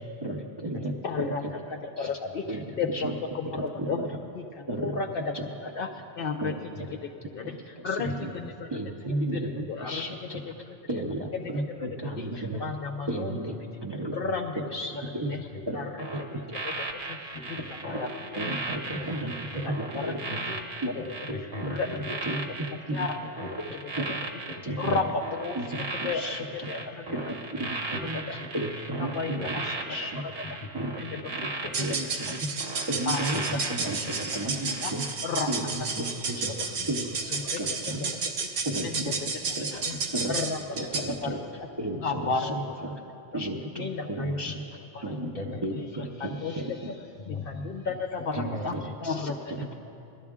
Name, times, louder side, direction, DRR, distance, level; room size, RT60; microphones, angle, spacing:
voice 1, 0.2-1.4 2.0-2.1 2.5-3.2 3.4-4.1 4.7-5.0 5.3-5.5 6.4-6.9 7.8-8.3 8.7-10.4 10.9-12.6 13.1-14.2 14.6-15.3 15.7-15.8 16.1-16.4 17.6-18.0 18.4-20.4 20.8-21.0 21.6-23.1 24.0-24.2 24.6-24.9 25.6-26.8 27.1-29.6 29.9-30.2 30.7-31.0 31.3-31.5 31.8-32.5 32.9-35.0 35.5-38.1 38.6-39.8 40.1-40.4 40.7-41.4 41.8-42.9 43.3-44.6 45.0-45.3 45.6-46.9 48.3-49.7, right 1 dB, 30° right, -1 dB, 0.6 m, -34 dB
voice 2, 1.0-1.4 2.0-2.4 2.8-4.0 4.4-4.5 4.8-5.2 5.8-5.9 6.2-6.5 7.3-7.6 7.8-8.1 9.3-9.4 9.7-10.0 10.7-10.8 12.2-13.4 14.1-14.5 15.3-15.4 15.7-15.8 16.6-16.7 17.1-17.2 17.5-17.6 17.8-17.9 18.3-18.5 19.9-20.4 21.7-21.9 22.9-23.1 24.8-25.1 25.4-25.6 26.0-26.3 26.7-26.8 28.3-28.4 29.1-29.4 29.7-29.8 30.1-30.2 31.0-31.2 31.8-31.9 33.1-33.4 33.9-34.1 34.8-34.9 35.2-35.5 37.5-37.6 38.4-38.5 38.8-39.0 39.9-40.0 40.3-40.6 41.2-41.3 42.0-42.5 43.8-44.1 44.9-45.0 46.4-46.6 47.6-48.7 49.0-49.3, left 4 dB, 60° left, 3 dB, 0.7 m, -31 dB
voice 3, 8.0-8.5 12.3-12.6 14.2-14.3 15.5-15.6 17.3-18.1 18.9-19.0 19.5-19.6 20.5-20.6 21.0-22.1 23.4-23.5 23.9-24.0 24.7-25.1 27.0-27.2 27.6-27.7 27.9-28.1 28.4-28.5 29.4-29.5 30.4-30.7 31.1-31.2 31.6-31.7 33.3-33.6 35.9-36.0 36.8-36.9 39.9-40.0 42.1-42.4 44.2-44.5 45.2-45.6 47.2-48.0 48.3-48.6, left 2 dB, 35° left, 2 dB, 1.0 m, -39 dB
sound 1, 16.0-35.1 35.5-35.7, right 3 dB, 60° right, 1.2 m, -37 dB
sound 2, 31.6-41.2, right 4 dB, 85° right, 1.2 m, -32 dB
17.0 x 12.0 x 3.6 m, 2.9 s
omnidirectional pair, 1.2 m